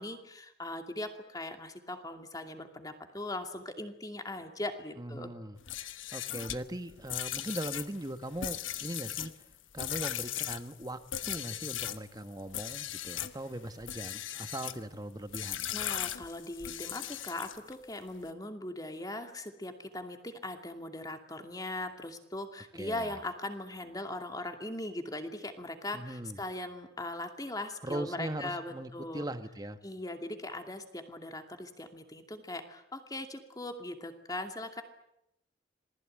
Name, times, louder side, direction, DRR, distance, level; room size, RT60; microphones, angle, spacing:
voice 1, 0.0-5.3 15.7-29.3 29.8-34.8, left 1 dB, 20° left, 6 dB, 2.5 m, -40 dB
voice 2, 5.0-9.5 9.7-11.0 11.3-15.7 22.7-23.1 25.9-26.4 27.8-29.8, right 1 dB, 20° right, 10 dB, 1.4 m, -40 dB
sound 1, 5.6-12.0 12.5-13.4 13.8-14.8 15.3-17.7, left 11 dB, 90° left, 1.2 m, -38 dB
27.0 x 19.5 x 8.9 m, 0.81 s
head